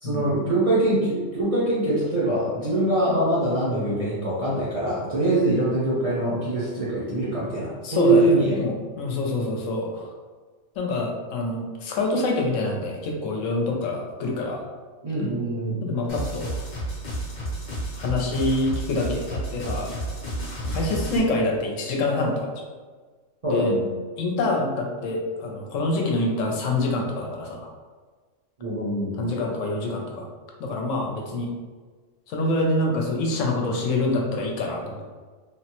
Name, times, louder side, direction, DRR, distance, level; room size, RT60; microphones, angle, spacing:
voice 1, 0.0-8.6 15.0-15.8 23.4-23.9 28.6-29.2, right 2 dB, 40° right, -8 dB, 0.6 m, -23 dB
voice 2, 7.8-10.1 10.8-14.6 15.8-16.6 18.0-19.9 20.7-22.7 23.5-23.7 24.2-27.7 29.2-30.3 30.6-31.5 32.3-35.1, left 2 dB, 80° left, 0 dB, 1.0 m, -26 dB
sound 1, 16.1-21.2, right 1 dB, 45° left, 0.7 m, -31 dB
3.2 x 2.0 x 2.9 m, 1.4 s
omnidirectional pair, 1.3 m